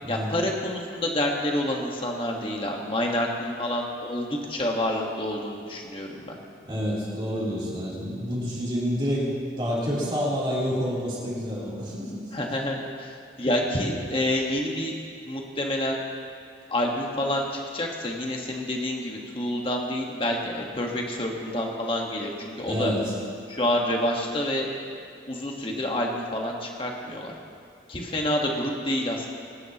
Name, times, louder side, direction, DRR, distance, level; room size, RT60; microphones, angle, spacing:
voice 1, 0.1-6.3 12.3-14.9 15.3-16.0 16.7-22.9 23.5-24.7 25.3-27.3 27.9-29.3, left 1 dB, 30° left, 0 dB, 1.4 m, -28 dB
voice 2, 6.6-12.3 22.7-23.0, equal, 25° right, -7 dB, 3.3 m, -28 dB
23.0 x 11.5 x 3.0 m, 2.3 s
head